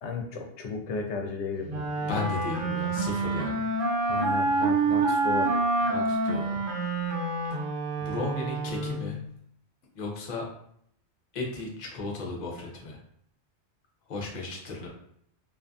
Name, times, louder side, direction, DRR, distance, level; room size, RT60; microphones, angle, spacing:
voice 1, 0.0-1.9 4.1-5.5, left 4 dB, 80° left, 2 dB, 0.9 m, -34 dB
Wind instrument woodwind instrument, 1.7-9.2, right 3 dB, 55° right, 0.7 m, -27 dB
voice 2, 2.0-3.6 5.9-6.6 8.0-9.2 9.9-10.5 11.3-13.0 14.1-14.9, left 3 dB, 50° left, -1 dB, 0.6 m, -35 dB
2.5 x 2.5 x 2.3 m, 0.70 s
omnidirectional pair, 1.2 m